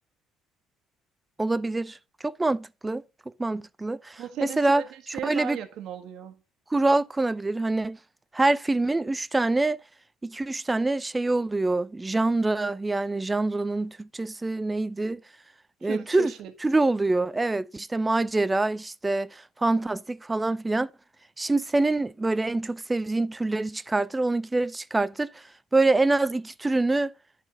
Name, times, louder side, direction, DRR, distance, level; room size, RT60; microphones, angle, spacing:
voice 1, 1.4-2.0 2.2-3.0 3.4-4.8 5.2-5.6 6.7-8.0 8.3-9.8 10.2-15.2 15.8-16.3 16.6-20.9 21.4-25.4 25.7-27.1, right 2 dB, 15° right, 0.6 m, -25 dB
voice 2, 4.2-6.4 15.8-16.5, right 10 dB, 70° right, 1.5 m, -36 dB
11.0 x 4.3 x 6.3 m
supercardioid pair, 85°, 0 cm